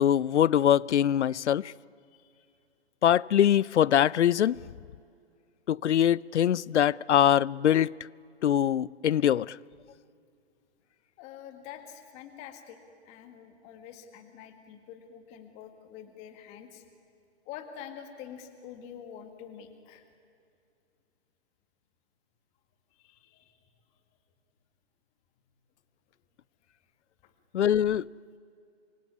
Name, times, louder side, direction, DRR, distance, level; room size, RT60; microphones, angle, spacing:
voice 1, 0.0-1.7 3.0-4.6 5.7-7.9 8.4-9.6 27.5-28.1, left 10 dB, 85° left, 0.6 m, -23 dB
voice 2, 2.1-2.5 11.2-12.8 13.1-16.8 17.5-20.1 22.9-23.7 27.2-27.3, left 9 dB, 20° left, 1.9 m, -46 dB
25.5 x 23.5 x 9.8 m
hypercardioid pair, 160°, 34 cm